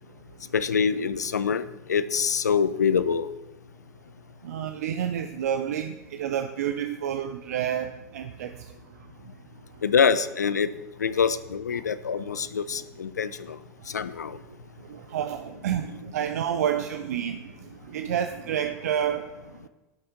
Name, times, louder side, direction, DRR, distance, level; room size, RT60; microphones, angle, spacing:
voice 1, 0.0-0.5 4.4-9.8 11.8-11.9 12.3-12.4 12.7-12.9 13.8-14.1 14.5-19.7, right 9 dB, 70° right, 0.5 m, -31 dB
voice 2, 0.5-1.6 1.9-3.3 9.8-10.7 11.0-13.6 13.9-14.4, left 6 dB, 80° left, 0.5 m, -25 dB
12.0 x 6.8 x 3.7 m
figure-of-eight pair, 80°, 9 cm